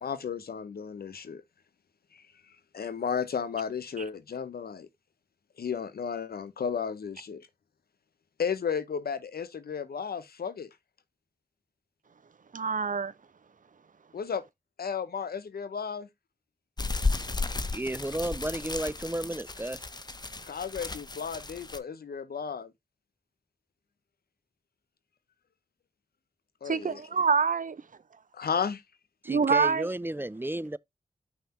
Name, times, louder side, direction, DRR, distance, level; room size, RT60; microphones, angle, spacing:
voice 1, 0.0-1.4 2.7-4.9 5.6-7.5 8.4-10.7 14.1-14.4 14.8-16.1 20.5-22.7 26.6-27.0 28.3-28.8, left 6 dB, 75° left, 0.8 m, -33 dB
voice 2, 12.5-13.1 26.7-27.8 29.3-29.9, right 5 dB, 55° right, 0.7 m, -26 dB
sound 1, 16.8-21.8, left 3 dB, 25° left, 0.8 m, -34 dB
voice 3, 17.6-19.9 29.2-30.8, right 1 dB, 15° right, 0.4 m, -33 dB
5.8 x 3.1 x 5.6 m
cardioid pair, 45°, 16 cm